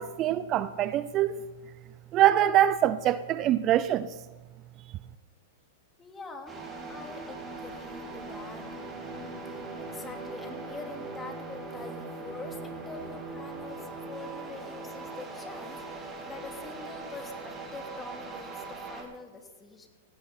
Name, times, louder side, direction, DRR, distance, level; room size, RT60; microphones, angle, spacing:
voice 1, 0.0-1.4 2.1-4.1, right 12 dB, 35° right, 0.6 m, -24 dB
voice 2, 6.0-6.6 6.9-8.7 9.0-19.9, left 3 dB, 15° left, 2.9 m, -45 dB
sound 1, 6.5-19.0, right 3 dB, 20° right, 5.5 m, -40 dB
18.0 x 16.5 x 4.4 m
hypercardioid pair, 110°, 0 cm